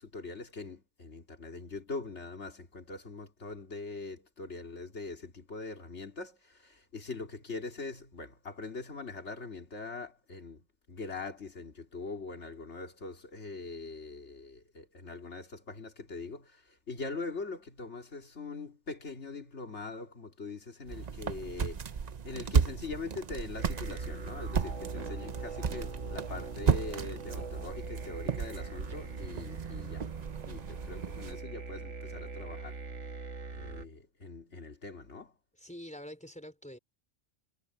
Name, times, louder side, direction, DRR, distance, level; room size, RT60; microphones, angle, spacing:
voice 1, 0.0-22.0 22.2-30.1 30.5-32.8 33.5-35.3, left 3 dB, 70° left, 3.1 m, -42 dB
sound 1, 20.9-31.4, right 6 dB, 40° right, 0.7 m, -34 dB
sound 2, 23.6-33.9, right 4 dB, 80° right, 2.1 m, -42 dB
voice 2, 35.6-36.8, equal, 5° left, 4.6 m, -45 dB
omnidirectional pair, 1.2 m